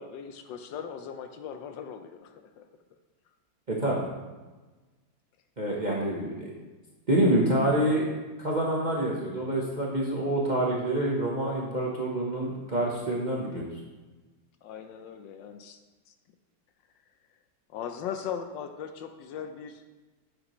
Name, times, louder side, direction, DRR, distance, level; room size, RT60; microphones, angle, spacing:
voice 1, 0.0-2.7 14.6-15.8 17.7-19.8, left 7 dB, 75° left, 7 dB, 1.2 m, -39 dB
voice 2, 3.7-4.1 5.6-6.5 7.1-8.0 8.4-13.7, right 1 dB, 35° right, -4 dB, 0.8 m, -27 dB
9.0 x 6.7 x 3.1 m, 1.2 s
omnidirectional pair, 2.1 m